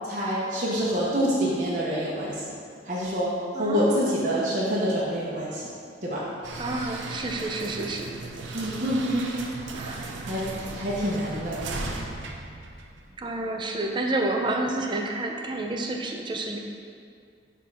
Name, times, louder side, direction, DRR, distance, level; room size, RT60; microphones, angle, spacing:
voice 1, 0.0-2.5 2.8-5.7 6.0-6.2 8.5-9.5 10.2-10.4 10.7-11.6, equal, 45° right, -7 dB, 1.0 m, -26 dB
voice 2, 3.5-4.2 6.6-8.2 9.8-10.0 13.2-16.6, right 2 dB, 25° right, 2 dB, 0.5 m, -29 dB
sound 1, 6.4-13.4, right 3 dB, 90° right, 0.6 m, -37 dB
6.4 x 3.7 x 5.5 m, 2.2 s
head